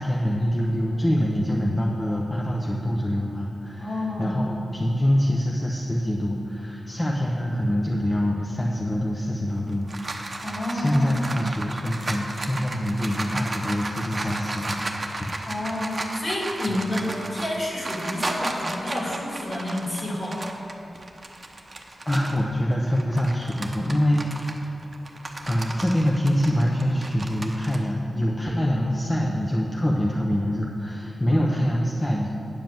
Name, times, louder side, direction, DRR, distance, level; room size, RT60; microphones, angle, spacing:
voice 1, 0.0-10.3 10.7-15.4 16.7-16.9 21.4-21.5 22.1-24.6 25.5-32.3, equal, 20° left, -3 dB, 0.9 m, -25 dB
voice 2, 3.8-4.4 10.4-11.3 15.5-20.4 28.5-28.6 31.6-31.7, left 1 dB, 45° left, -4 dB, 2.4 m, -29 dB
sound 1, 9.5-22.4 22.9-27.8, right 2 dB, 35° right, 0.8 m, -34 dB
9.4 x 5.0 x 7.4 m, 2.8 s
wide cardioid pair, 80°, 0 cm